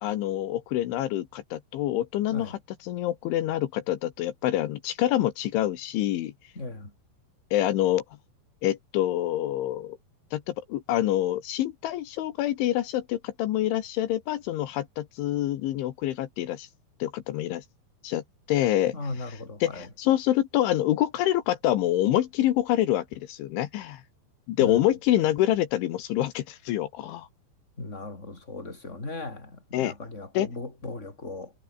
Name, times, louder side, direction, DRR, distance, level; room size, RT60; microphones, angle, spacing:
voice 1, 0.0-2.6 2.8-6.3 7.5-8.0 8.6-10.0 10.3-16.7 17.0-17.6 18.0-18.2 18.5-18.9 19.6-24.0 24.5-27.3 29.7-29.9 30.4-30.5, left 13 dB, 80° left, 3.9 m, -26 dB
voice 2, 6.5-6.9 18.9-19.9 24.6-24.9 27.8-31.5, left 2 dB, 15° left, 5.5 m, -37 dB
omnidirectional pair, 5.4 m